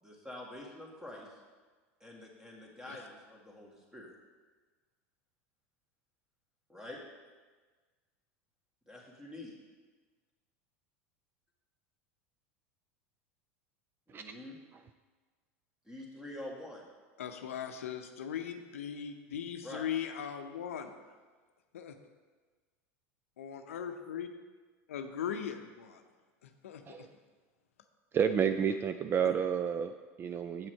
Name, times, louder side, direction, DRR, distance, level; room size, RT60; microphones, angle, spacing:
voice 1, 0.0-1.3 2.0-4.1 6.7-7.0 8.9-9.5 14.1-14.6 15.9-16.8 19.6-19.9, left 1 dB, 10° right, -2 dB, 1.9 m, -46 dB
voice 2, 17.2-21.2 21.7-22.0 23.4-24.3 24.9-26.0 26.4-27.1 29.2-29.3, left 8 dB, 85° left, 7 dB, 0.6 m, -39 dB
voice 3, 28.1-30.7, right 7 dB, 30° right, 9 dB, 0.3 m, -31 dB
7.8 x 6.1 x 4.5 m, 1.4 s
hypercardioid pair, 100°, 7 cm